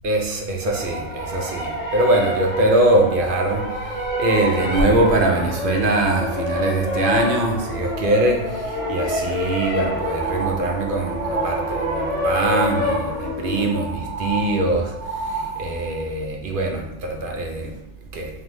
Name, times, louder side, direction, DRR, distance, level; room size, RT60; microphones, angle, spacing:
voice 1, 0.0-3.6 4.2-14.9 15.3-17.7 18.1-18.3, right 2 dB, 55° right, 2 dB, 0.6 m, -22 dB
sound 1, 0.6-13.7, left 1 dB, 30° left, 0.6 m, -27 dB
sound 2, 8.6-12.3 12.6-13.3 13.6-16.0 16.6-16.7, right 5 dB, 85° right, 1.1 m, -31 dB
5.1 x 2.5 x 3.0 m, 0.93 s
omnidirectional pair, 1.4 m